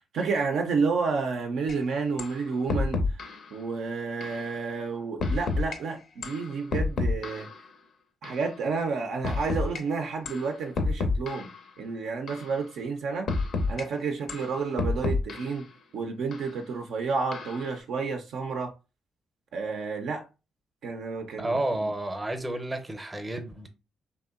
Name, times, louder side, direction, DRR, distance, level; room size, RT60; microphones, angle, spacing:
voice 1, 0.1-7.5 8.2-11.5 11.8-13.3 13.7-15.6 15.9-18.7 19.5-20.3 20.8-21.5 21.8-21.9, right 4 dB, 70° right, 0.4 m, -30 dB
sound 1, 1.7-1.8 2.2-2.4 2.7-3.4 4.2-4.4 5.2-5.8 6.2-7.6 8.2-8.4 9.2-9.8 10.3-10.5 10.8-11.6 12.3-12.5 13.3-13.8 14.3-15.6 16.3-16.5 17.3-17.7, left 3 dB, 60° left, 0.5 m, -29 dB
voice 2, 21.4-23.7, right 1 dB, 20° right, 0.6 m, -31 dB
2.7 x 2.1 x 2.3 m
hypercardioid pair, 45°, 0 cm